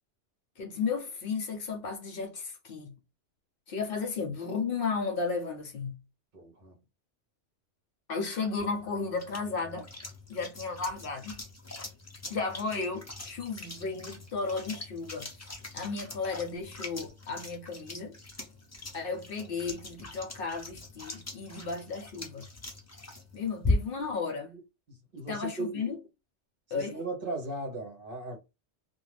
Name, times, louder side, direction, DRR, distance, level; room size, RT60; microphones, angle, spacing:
voice 1, 0.6-2.9 3.7-6.0 8.1-9.9 10.3-11.4 12.3-15.3 15.7-18.2 18.9-22.5 23.3-24.5 25.3-26.0 26.7-27.0, left 4 dB, 60° left, 0.7 m, -34 dB
voice 2, 6.3-6.8 24.5-24.6 24.9-25.8 26.7-28.4, right 2 dB, 50° right, 1.0 m, -37 dB
sound 1, 8.6-24.1, left 2 dB, 25° left, 0.4 m, -39 dB
2.4 x 2.2 x 3.2 m
omnidirectional pair, 1.2 m